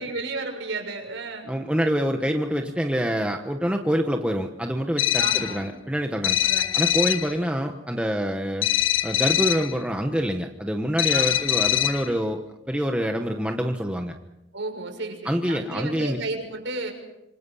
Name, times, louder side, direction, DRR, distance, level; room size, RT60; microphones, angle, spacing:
voice 1, 0.0-1.5 5.2-5.7 6.4-6.9 11.1-11.4 14.5-16.9, right 3 dB, 65° right, 3 dB, 6.9 m, -33 dB
voice 2, 1.5-6.4 6.7-8.7 9.0-12.4 12.7-14.1 15.2-16.2, equal, 5° right, 3 dB, 1.2 m, -26 dB
sound 1, 5.0-5.6 6.2-7.3 8.6-9.7 11.0-12.1, left 13 dB, 75° left, 1.4 m, -23 dB
27.0 x 25.0 x 5.7 m, 0.89 s
head